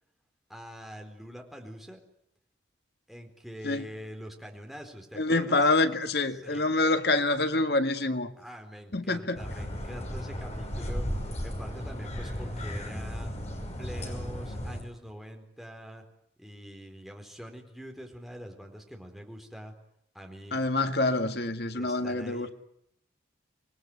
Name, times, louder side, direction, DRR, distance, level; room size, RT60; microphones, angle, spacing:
voice 1, 0.5-2.0 3.1-5.7 6.3-6.6 8.4-13.3 13.8-16.0 16.4-19.7 20.1-20.6 21.7-22.5, equal, ahead, 4.3 m, -44 dB
voice 2, 5.2-8.3 8.9-9.4 20.5-22.5, left 2 dB, 60° left, 1.8 m, -26 dB
sound 1, 9.3-14.8, equal, 35° left, 5.8 m, -35 dB
27.0 x 21.0 x 9.6 m
head